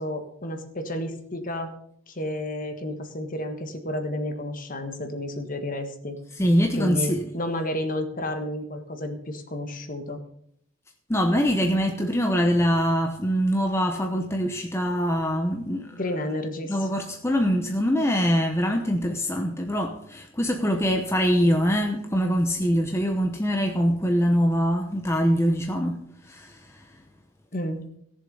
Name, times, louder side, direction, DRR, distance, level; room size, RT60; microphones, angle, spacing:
voice 1, 0.0-1.7 2.1-6.2 6.8-10.2 15.9-16.9 27.5-27.9, left 1 dB, 40° left, 1.5 m, -31 dB
voice 2, 6.4-7.3 11.1-15.9 16.7-26.9, equal, 15° left, 0.8 m, -23 dB
17.0 x 7.3 x 5.4 m
head